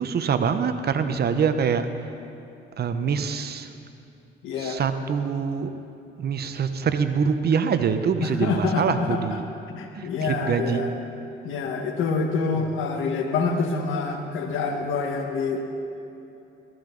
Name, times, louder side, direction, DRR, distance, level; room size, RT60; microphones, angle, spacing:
voice 1, 0.0-1.9 2.8-3.7 4.6-5.7 6.2-9.4 9.9-10.8, right 6 dB, 55° right, 9 dB, 0.9 m, -24 dB
voice 2, 4.4-4.8 8.2-9.4 9.7-10.9 11.4-15.6, left 4 dB, 85° left, 4 dB, 1.5 m, -26 dB
15.0 x 15.0 x 3.9 m, 2.9 s
cardioid pair, 90°, 20 cm